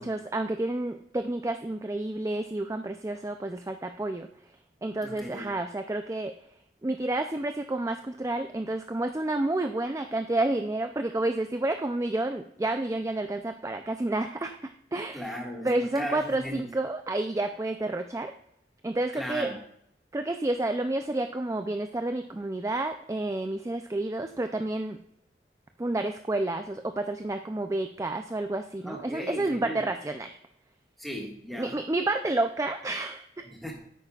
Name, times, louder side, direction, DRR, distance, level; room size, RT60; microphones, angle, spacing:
voice 1, 0.0-4.3 4.8-6.3 6.8-15.3 15.6-18.3 18.8-19.5 20.1-25.0 25.8-30.4 31.6-33.5, right 2 dB, 15° right, 7 dB, 0.4 m, -30 dB
voice 2, 5.0-5.5 15.1-16.7 19.1-19.6 28.8-29.8 31.0-31.8 33.4-33.8, equal, ahead, -1 dB, 1.7 m, -37 dB
10.0 x 8.5 x 2.4 m, 0.74 s
head